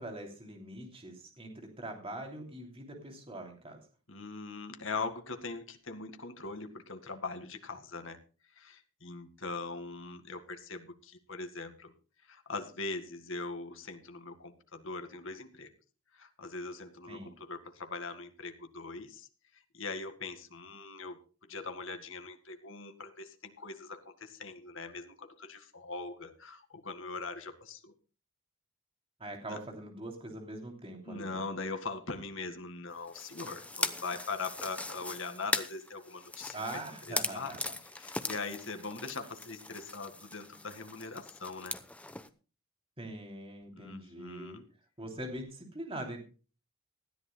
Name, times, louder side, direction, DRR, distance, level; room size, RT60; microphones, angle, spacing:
voice 1, 0.0-3.8 17.1-17.3 29.2-31.5 36.5-37.8 43.0-44.6 45.0-46.2, right 1 dB, 25° right, 2 dB, 3.0 m, -43 dB
voice 2, 4.1-8.2 8.6-11.9 12.3-15.7 16.1-19.3 19.7-21.2 21.5-27.9 29.5-29.6 31.1-36.6 37.1-37.5 38.0-41.8 43.7-44.6, left 3 dB, 60° left, 7 dB, 2.0 m, -41 dB
sound 1, 33.1-42.3, left 2 dB, 5° left, 0.8 m, -39 dB
19.0 x 13.5 x 2.3 m, 0.36 s
head